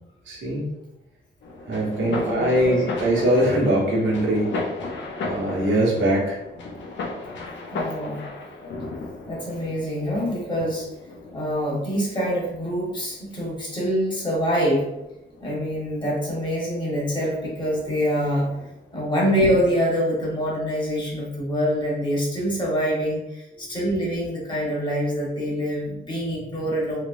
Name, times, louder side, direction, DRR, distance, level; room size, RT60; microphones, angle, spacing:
voice 1, 0.3-0.7 1.7-4.6 5.2-6.4, right 1 dB, 85° right, -2 dB, 1.1 m, -22 dB
sound 1, 1.4-19.7, left 3 dB, 70° left, 0.6 m, -36 dB
voice 2, 1.9-2.8 7.7-8.2 9.3-10.9 11.3-14.9 15.4-18.5 18.9-27.0, equal, 25° left, -5 dB, 1.2 m, -25 dB
3.2 x 3.0 x 2.6 m, 0.91 s
wide cardioid pair, 130°, 19 cm